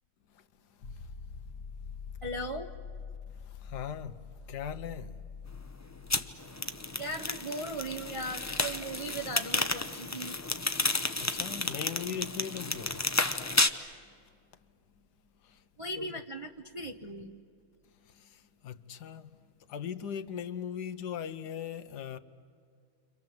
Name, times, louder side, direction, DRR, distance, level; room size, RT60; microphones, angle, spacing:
sound 1, 0.8-14.3 17.0-17.1, left 5 dB, 65° left, 1.8 m, -48 dB
voice 1, 2.2-2.7 7.0-10.4 15.8-17.3, right 1 dB, 25° right, 0.9 m, -38 dB
voice 2, 3.6-4.2 4.5-5.1 11.2-13.0 15.9-16.1 18.6-19.3 19.7-22.2, left 8 dB, 90° left, 1.5 m, -38 dB
sound 2, 6.1-13.7, left 2 dB, 25° left, 0.4 m, -31 dB
29.5 x 26.0 x 7.8 m
omnidirectional pair, 1.7 m